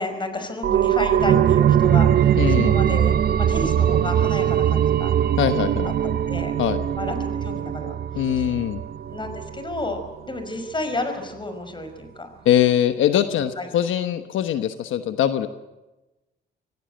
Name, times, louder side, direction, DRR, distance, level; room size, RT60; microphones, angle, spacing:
voice 1, 0.0-3.1 3.5-5.1 5.8-6.5 7.0-7.9 8.4-8.5 9.1-12.3 13.4-13.7, left 2 dB, 25° left, 8 dB, 5.3 m, -31 dB
sound 1, 0.6-10.0 10.3-10.4, right 10 dB, 50° right, 0.8 m, -21 dB
voice 2, 2.4-2.8 5.4-5.9 6.6-6.8 8.1-8.8 12.4-15.5, left 10 dB, 80° left, 9 dB, 1.1 m, -22 dB
25.5 x 16.5 x 7.9 m, 1.1 s
cardioid pair, 90°, 20 cm